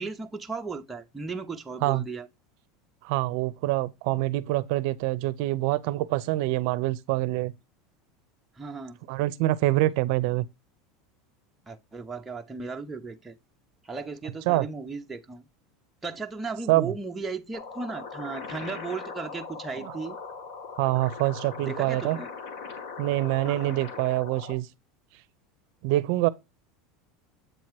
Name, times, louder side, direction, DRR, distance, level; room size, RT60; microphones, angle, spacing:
voice 1, 0.0-2.3 8.6-9.0 11.7-13.4 13.8-15.5 16.0-20.2 21.6-22.3 23.4-23.8, right 4 dB, 10° right, 0.5 m, -36 dB
voice 2, 3.0-7.5 9.1-10.4 14.5-14.7 16.7-16.9 19.7-19.9 20.8-22.2 23.0-24.7 25.8-26.3, right 17 dB, 60° right, 0.5 m, -25 dB
sound 1, 17.5-24.5, left 5 dB, 55° left, 1.6 m, -40 dB
7.9 x 2.9 x 4.5 m
supercardioid pair, 165°, 0 cm